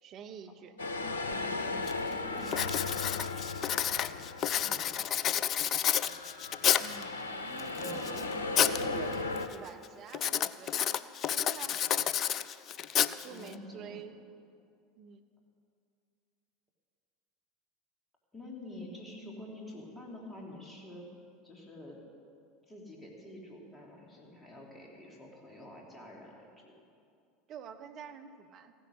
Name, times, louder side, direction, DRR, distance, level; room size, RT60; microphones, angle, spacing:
voice 1, 0.0-0.8 6.8-10.9 11.3-12.1 13.0-14.2 15.0-15.2 27.5-28.7, right 7 dB, 45° right, 8 dB, 1.0 m, -47 dB
sound 1, 0.8-5.4 5.8-9.5, left 3 dB, 80° left, 0.8 m, -37 dB
Writing, 1.3-1.4 1.9-2.1 2.5-7.0 7.6-8.8 9.1-9.5 10.1-13.5, left 9 dB, 40° left, 0.4 m, -30 dB
voice 2, 1.3-3.7 3.9-4.2 4.4-5.4 7.7-8.1 13.2-14.0 18.3-21.1 21.4-22.0 22.7-26.7, left 1 dB, 15° left, -2 dB, 3.3 m, -48 dB
15.5 x 10.5 x 6.6 m, 2.4 s
figure-of-eight pair, 75°, 0 cm